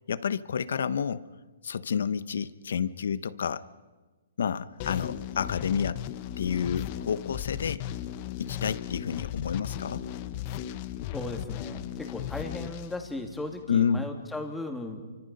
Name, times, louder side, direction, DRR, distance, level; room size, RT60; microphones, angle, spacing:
voice 1, 0.1-1.2 1.6-3.7 4.4-6.0 6.4-7.8 8.4-10.1 13.7-14.1, left 7 dB, 75° left, 16 dB, 1.0 m, -29 dB
sound 1, 4.8-13.7, left 11 dB, 35° left, 0.9 m, -36 dB
voice 2, 11.1-15.1, left 2 dB, 5° left, 4 dB, 2.4 m, -36 dB
29.0 x 25.0 x 5.5 m, 1.3 s
hypercardioid pair, 155°, 0 cm